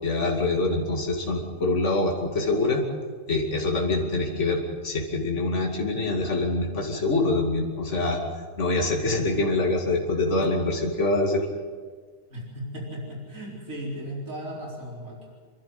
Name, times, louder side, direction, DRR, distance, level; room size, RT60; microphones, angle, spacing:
voice 1, 0.0-2.8 3.3-8.2 8.6-11.5, left 2 dB, 60° left, 1 dB, 2.8 m, -25 dB
voice 2, 12.3-15.3, equal, 80° right, -2 dB, 4.9 m, -36 dB
28.5 x 12.0 x 9.5 m, 1.5 s
omnidirectional pair, 1.4 m